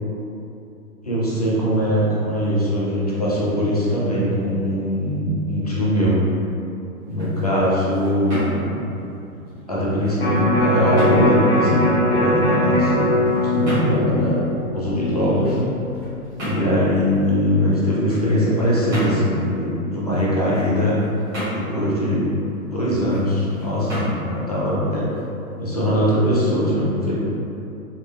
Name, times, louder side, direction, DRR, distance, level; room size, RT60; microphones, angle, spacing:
voice 1, 1.0-6.2 7.1-8.7 9.7-11.8 12.1-14.5 14.7-15.6 16.4-21.0 21.5-22.3 22.7-25.0 25.6-27.1, equal, 30° left, -7 dB, 0.4 m, -21 dB
sound 1, 7.0-25.8, equal, 15° right, 1.0 m, -35 dB
Electric guitar, 10.2-16.4 16.8-16.9, left 1 dB, 45° left, 0.8 m, -21 dB
3.6 x 2.5 x 3.2 m, 2.8 s
hypercardioid pair, 170°, 44 cm